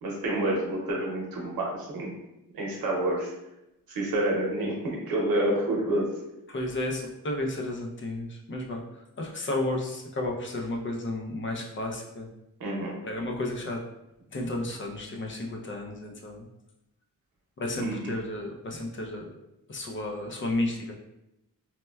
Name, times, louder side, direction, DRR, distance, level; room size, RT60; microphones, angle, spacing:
voice 1, 0.0-2.1 2.5-3.3 3.9-6.1 12.6-12.9 17.8-18.1, right 1 dB, 75° right, -2 dB, 0.8 m, -28 dB
voice 2, 6.5-8.8 9.2-12.3 13.0-13.8 14.3-16.5 17.6-19.3 19.7-21.0, left 1 dB, 35° left, 0 dB, 0.5 m, -32 dB
4.2 x 2.1 x 2.2 m, 0.89 s
wide cardioid pair, 135°, 35 cm